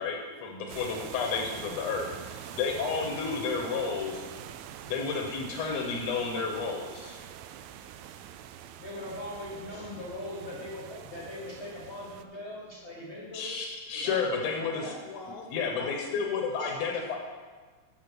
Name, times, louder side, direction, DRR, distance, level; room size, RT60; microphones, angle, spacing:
voice 1, 0.0-4.2 4.9-7.2 13.3-14.9 15.5-17.2, left 5 dB, 70° left, 1 dB, 1.7 m, -31 dB
sound 1, 0.7-12.3, right 10 dB, 85° right, 2.2 m, -45 dB
voice 2, 2.2-2.5 3.7-3.8 8.8-13.6 13.9-15.0 16.6-17.0, left 1 dB, 40° left, -5 dB, 0.9 m, -41 dB
voice 3, 14.5-17.2, left 5 dB, 85° left, 2 dB, 2.8 m, -44 dB
8.4 x 5.8 x 6.1 m, 1.4 s
omnidirectional pair, 4.0 m